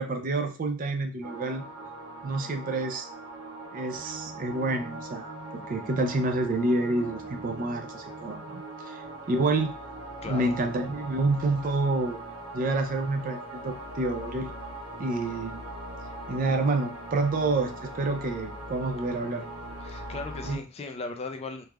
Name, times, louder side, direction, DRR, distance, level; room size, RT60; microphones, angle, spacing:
voice 1, 0.0-1.6 2.2-3.1 3.7-5.3 5.7-9.7 10.3-12.2 12.5-14.5 15.0-15.6 16.3-19.5 20.4-20.6, right 2 dB, 40° right, 5 dB, 0.4 m, -28 dB
sound 1, 1.2-20.6, right 1 dB, 60° right, 1.0 m, -41 dB
voice 2, 10.2-10.6 19.8-21.7, left 3 dB, 30° left, 6 dB, 0.3 m, -37 dB
3.2 x 2.4 x 2.2 m, 0.35 s
head